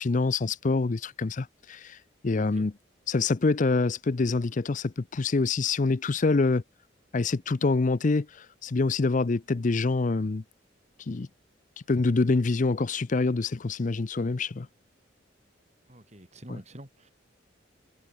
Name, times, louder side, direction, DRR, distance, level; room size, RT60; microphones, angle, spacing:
voice 1, 0.0-2.0 2.2-2.7 3.1-6.6 7.1-10.4 11.1-11.3 11.9-14.7, left 3 dB, 40° left, 0.5 m, -26 dB
voice 2, 2.4-2.7 15.9-17.1, right 1 dB, 35° right, 6.8 m, -47 dB
head